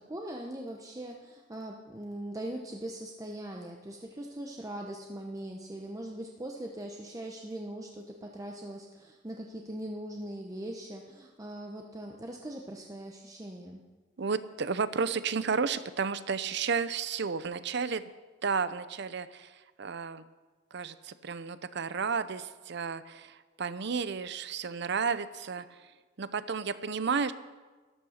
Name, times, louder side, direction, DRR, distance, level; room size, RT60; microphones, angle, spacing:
voice 1, 0.0-13.8, right 1 dB, 20° right, 1 dB, 0.9 m, -41 dB
voice 2, 14.2-18.0 18.4-19.5 19.8-20.2 20.7-25.8 26.2-27.3, right 5 dB, 60° right, 14 dB, 0.6 m, -32 dB
12.5 x 11.5 x 6.5 m, 1.3 s
head